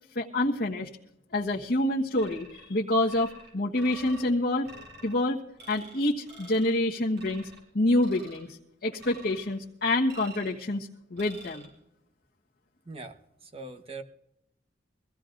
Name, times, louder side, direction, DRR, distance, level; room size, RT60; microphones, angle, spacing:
voice 1, 0.1-0.9 1.3-4.7 5.0-5.4 5.7-7.5 7.7-8.6 8.8-11.7, left 1 dB, 60° left, -4 dB, 1.3 m, -27 dB
sound 1, 2.2-2.7 3.1-4.3 4.6-5.1 5.6-6.0 6.3-6.8 7.2-7.6 8.0-8.5 9.0-9.6 10.1-10.6 11.2-11.7, right 1 dB, 65° right, 6.3 m, -49 dB
voice 2, 12.9-14.0, right 3 dB, 30° right, 6 dB, 1.1 m, -42 dB
24.0 x 16.0 x 2.6 m, 0.84 s
head